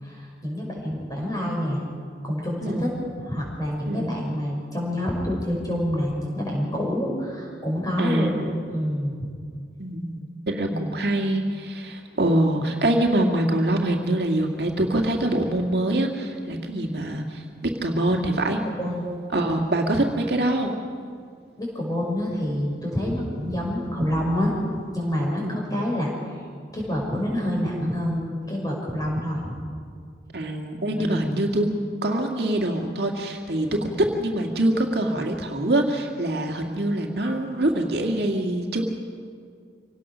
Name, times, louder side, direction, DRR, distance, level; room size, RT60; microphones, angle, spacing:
voice 1, 0.0-1.8 2.2-2.9 3.2-8.3 8.7-9.2 10.7-11.0 18.8-19.0 21.6-24.5 24.9-26.1 26.7-29.4 31.0-31.4, left 1 dB, 20° left, -2 dB, 5.8 m, -27 dB
voice 2, 8.0-8.6 9.8-10.2 10.5-18.6 19.3-20.7 25.4-25.6 30.3-38.9, right 1 dB, 65° right, 2 dB, 2.0 m, -24 dB
25.5 x 18.0 x 6.3 m, 2.1 s
head